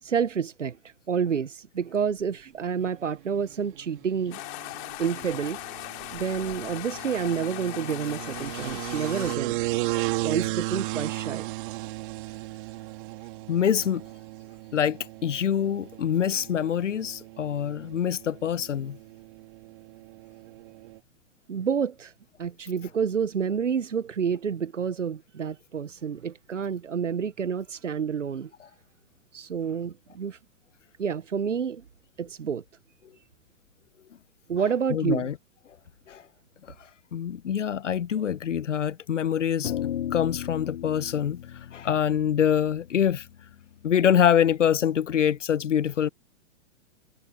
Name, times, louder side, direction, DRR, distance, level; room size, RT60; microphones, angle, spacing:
voice 1, 0.0-4.4 5.0-5.6 6.1-9.6 10.2-11.5 21.5-22.1 22.4-28.5 29.3-30.4 31.0-31.8 32.2-32.6 34.5-35.3, right 7 dB, 90° right, 0.8 m, -29 dB
sound 1, 2.9-21.0, right 20 dB, 45° right, 2.5 m, -36 dB
sound 2, 4.3-9.4, left 35 dB, 40° left, 2.8 m, -39 dB
voice 2, 13.5-14.0 14.7-19.0 34.9-35.4 36.1-36.2 37.1-41.4 41.7-43.3 43.8-46.1, left 9 dB, 80° left, 0.8 m, -25 dB
sound 3, 39.6-44.2, left 10 dB, 65° left, 3.2 m, -36 dB
figure-of-eight pair, 115°, 36 cm